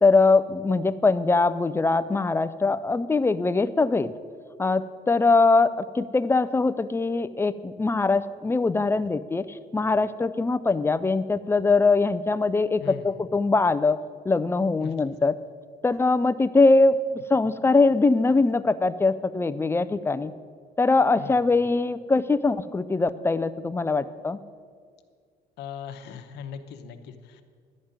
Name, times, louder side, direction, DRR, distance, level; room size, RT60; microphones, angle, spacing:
voice 1, 0.0-4.1 4.6-9.5 9.7-14.0 14.3-15.3 15.8-17.0 17.3-20.3 20.8-24.4, left 3 dB, 15° left, 14 dB, 0.4 m, -22 dB
voice 2, 12.8-13.2 14.8-14.9 17.4-17.5 21.2-21.4 25.6-27.4, left 7 dB, 80° left, 7 dB, 0.9 m, -39 dB
12.0 x 5.2 x 8.7 m, 2.1 s
cardioid pair, 110°, 17 cm